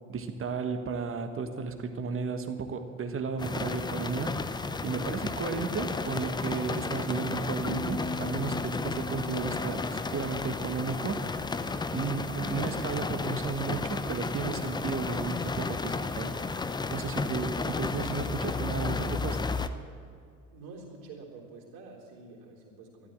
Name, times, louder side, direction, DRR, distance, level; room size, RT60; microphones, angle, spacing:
voice 1, 0.1-4.4 4.8-11.2 11.9-16.4 16.9-19.4, right 5 dB, 30° right, 8 dB, 1.5 m, -33 dB
sound 1, 3.4-19.7, left 4 dB, 10° left, 0.6 m, -33 dB
Piano, 7.7-11.4, left 2 dB, 35° left, 2.5 m, -40 dB
voice 2, 20.5-23.1, right 3 dB, 60° right, -1 dB, 3.6 m, -47 dB
13.0 x 13.0 x 7.7 m, 2.4 s
figure-of-eight pair, 70°, 44 cm